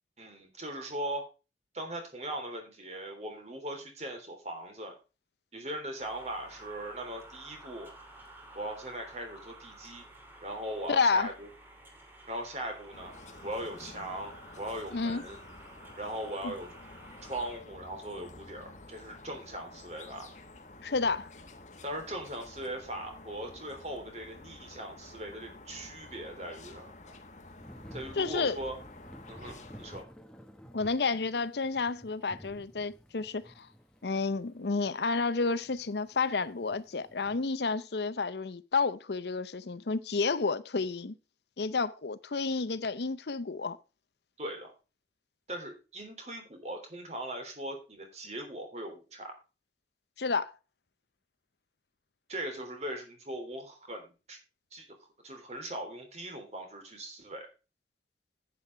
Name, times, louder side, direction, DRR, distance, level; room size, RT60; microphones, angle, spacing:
voice 1, 0.2-1.3 1.7-5.0 5.5-7.9 8.5-10.1 10.4-11.5 12.3-13.2 13.4-15.4 16.0-16.7 17.3-20.3 21.8-27.1 27.9-28.8 29.3-30.1 44.4-44.7 45.5-49.4 52.3-54.4 54.7-54.9 55.2-57.5, right 1 dB, 35° right, 3.5 m, -39 dB
sound 1, 6.0-17.6, right 1 dB, 10° right, 2.8 m, -52 dB
voice 2, 10.9-11.3 14.9-15.2 16.4-16.5 20.8-21.3 28.2-28.6 30.7-33.7 34.0-41.2 41.6-43.8 50.2-50.5, left 4 dB, 70° left, 0.7 m, -30 dB
sound 2, 12.9-30.1, left 2 dB, 40° left, 1.3 m, -51 dB
Thunder / Rain, 27.6-37.4, equal, 5° left, 1.3 m, -52 dB
10.5 x 9.2 x 3.4 m
head